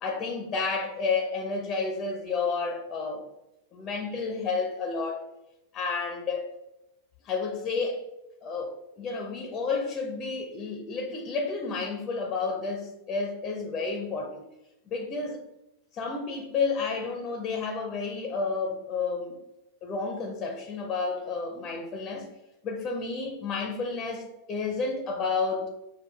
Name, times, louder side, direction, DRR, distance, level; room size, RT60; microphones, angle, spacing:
voice 1, 0.0-3.2 3.7-5.3 5.7-6.5 7.2-8.0 8.4-14.4 14.9-15.4 15.9-19.3 19.8-22.3 22.6-25.7, left 4 dB, 30° left, 3 dB, 0.5 m, -31 dB
6.1 x 2.3 x 2.3 m, 0.93 s
figure-of-eight pair, 90°, 0 cm